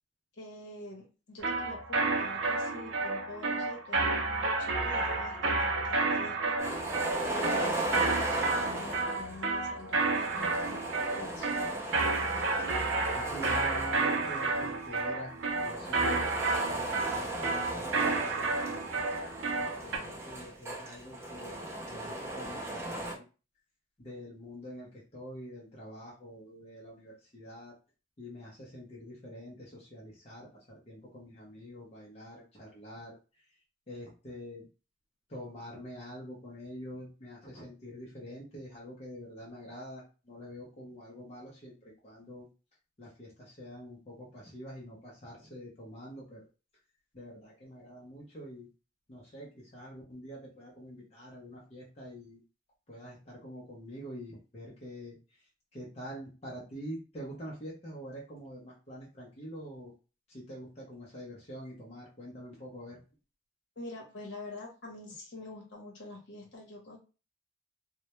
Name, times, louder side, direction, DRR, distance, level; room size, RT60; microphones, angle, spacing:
voice 1, 0.3-6.5 7.2-10.8 11.1-11.5 63.8-67.0, left 2 dB, 65° left, -1 dB, 0.8 m, -45 dB
sound 1, 1.4-20.0, right 3 dB, 75° right, 0.5 m, -31 dB
sound 2, 6.6-9.4 10.0-14.8 15.4-23.2, right 2 dB, 15° right, 0.3 m, -37 dB
voice 2, 13.1-16.3 16.7-19.1 19.6-21.6 21.9-23.2 24.0-27.7 28.2-33.4 33.9-34.7 35.3-42.5 43.0-46.4 47.1-48.7 49.1-52.4 52.9-59.9 60.3-63.0, equal, 30° left, -5 dB, 0.6 m, -46 dB
2.1 x 2.1 x 2.8 m, 0.34 s
head